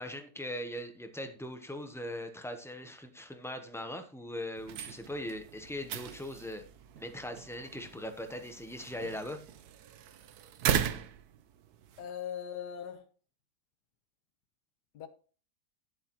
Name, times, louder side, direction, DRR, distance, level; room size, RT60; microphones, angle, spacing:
voice 1, 0.0-6.7 7.0-9.4, left 1 dB, 5° left, 0.6 m, -40 dB
sound 1, 4.6-12.1, right 9 dB, 75° right, 1.2 m, -38 dB
voice 2, 12.0-13.0 14.9-15.1, left 9 dB, 90° left, 1.6 m, -39 dB
11.5 x 7.8 x 3.0 m
omnidirectional pair, 1.7 m